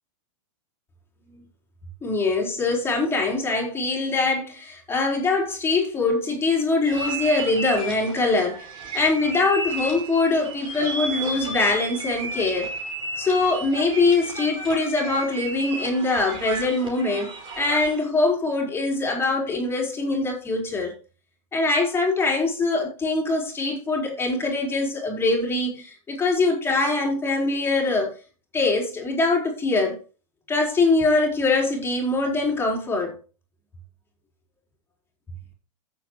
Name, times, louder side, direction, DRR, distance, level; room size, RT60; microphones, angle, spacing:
voice 1, 2.0-8.7 8.9-12.7 13.2-20.9 21.5-28.1 28.5-30.0 30.5-33.2, left 3 dB, 15° left, 4.3 m, -23 dB
sound 1, 6.8-18.0, right 2 dB, 30° right, 5.3 m, -33 dB
15.0 x 7.7 x 3.0 m
hypercardioid pair, 135°, 17 cm